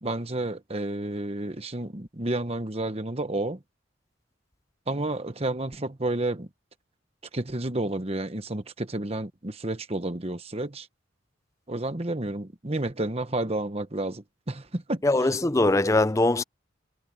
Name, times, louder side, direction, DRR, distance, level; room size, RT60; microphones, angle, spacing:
voice 1, 0.0-3.6 4.9-6.5 7.3-10.9 11.7-15.0, right 2 dB, 30° right, 1.2 m, -30 dB
voice 2, 15.0-16.4, left 2 dB, 15° left, 0.5 m, -21 dB
head